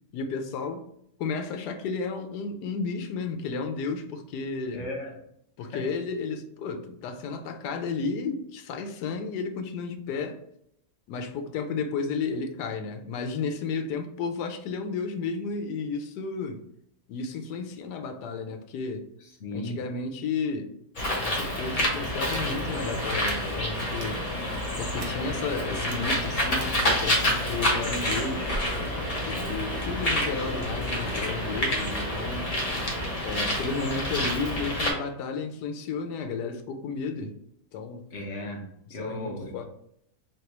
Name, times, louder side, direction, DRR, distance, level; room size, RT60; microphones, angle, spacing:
voice 1, 0.1-0.9 1.2-4.8 5.6-10.4 11.1-16.6 17.1-19.1 19.5-20.7 21.2-24.2 24.8-28.5 29.3-32.5 33.2-37.3 37.7-38.1 38.9-39.7, left 4 dB, 85° left, 6 dB, 1.2 m, -33 dB
voice 2, 4.7-5.1 5.6-5.9 19.4-19.8 38.1-39.5, left 1 dB, 55° left, 0 dB, 1.1 m, -36 dB
Bird, 20.9-34.9, left 1 dB, 35° left, 0.7 m, -28 dB
sound 1, 22.2-22.4 23.0-23.3 23.9-24.1 25.0-25.1 25.7-25.9 26.6-26.7, right 5 dB, 60° right, 1.0 m, -44 dB
3.8 x 3.3 x 2.9 m, 0.74 s
omnidirectional pair, 1.7 m